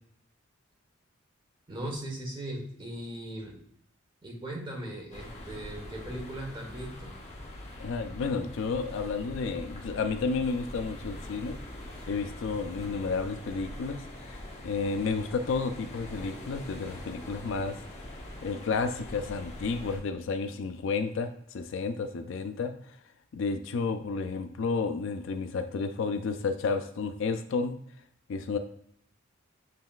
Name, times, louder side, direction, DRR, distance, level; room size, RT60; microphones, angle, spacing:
voice 1, 1.7-3.6 4.2-7.2, right 1 dB, 25° right, -1 dB, 1.2 m, -38 dB
sound 1, 5.1-20.0, left 1 dB, 35° left, 0.9 m, -43 dB
voice 2, 7.8-11.6 12.1-17.8 18.4-22.7 23.3-27.7 28.3-28.6, left 4 dB, 65° left, 8 dB, 0.4 m, -31 dB
7.4 x 3.1 x 2.3 m, 0.69 s
head